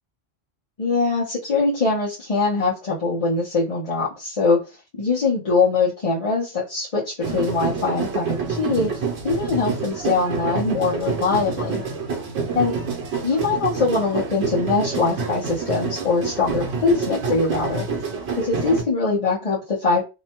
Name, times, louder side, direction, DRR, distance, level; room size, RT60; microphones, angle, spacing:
voice 1, 0.8-4.6 5.0-8.9 9.2-11.8 12.5-12.7 13.2-17.8 18.4-20.0, left 4 dB, 35° left, -7 dB, 0.7 m, -22 dB
sound 1, 7.2-18.8, right 5 dB, 75° right, 1.0 m, -27 dB
2.6 x 2.2 x 2.8 m, 0.28 s
omnidirectional pair, 1.1 m